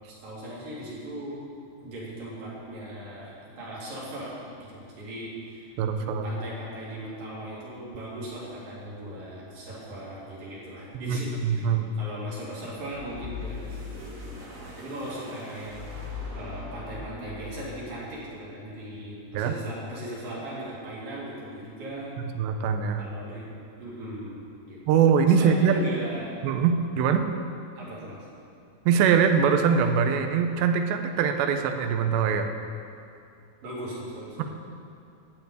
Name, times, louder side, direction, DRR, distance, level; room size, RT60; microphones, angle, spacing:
voice 1, 0.1-1.4 1.8-4.3 4.6-22.1 23.0-23.5 23.8-24.8 25.4-26.4 27.8-28.2 33.6-34.4, right 1 dB, 55° right, -7 dB, 4.3 m, -38 dB
voice 2, 5.8-6.2 11.0-11.9 19.3-19.6 22.4-23.0 24.9-25.8 26.4-27.3 28.9-32.5, right 7 dB, 80° right, 7 dB, 2.9 m, -23 dB
sound 1, 12.9-18.0, left 4 dB, 30° right, 2.4 m, -40 dB
13.5 x 5.7 x 9.4 m, 2.6 s
omnidirectional pair, 5.1 m